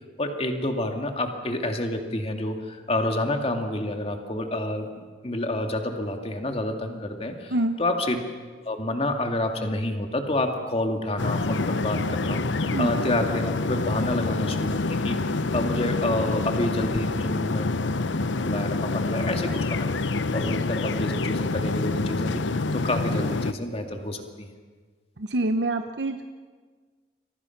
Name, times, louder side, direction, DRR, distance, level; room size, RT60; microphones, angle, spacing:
voice 1, 0.2-4.9 5.2-7.5 7.8-8.2 8.6-17.8 18.4-19.9 20.3-24.5, left 1 dB, 35° left, 4 dB, 2.3 m, -28 dB
sound 1, 11.2-23.5, left 3 dB, 90° left, 0.8 m, -27 dB
voice 2, 25.2-26.2, right 1 dB, 65° right, 7 dB, 0.9 m, -26 dB
29.0 x 24.0 x 6.0 m, 1.5 s
head